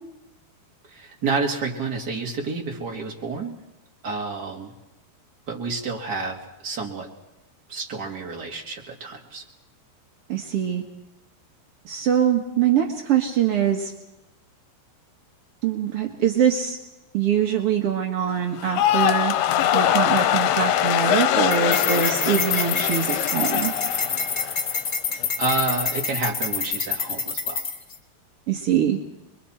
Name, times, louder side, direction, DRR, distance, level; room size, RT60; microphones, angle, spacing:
voice 1, 0.9-3.5 4.0-4.7 5.5-6.4 6.6-7.1 7.7-9.4 25.1-27.6, right 3 dB, 30° right, 0 dB, 2.1 m, -29 dB
voice 2, 10.3-10.8 11.8-13.9 15.6-16.8 17.1-19.3 19.7-23.7 28.5-29.0, right 9 dB, 70° right, 2 dB, 1.4 m, -23 dB
sound 1, 18.6-24.9 25.2-25.7, left 11 dB, 80° left, 2.8 m, -23 dB
sound 2, 21.5-27.9, left 5 dB, 55° left, 0.8 m, -27 dB
27.5 x 22.5 x 4.4 m, 0.97 s
omnidirectional pair, 4.6 m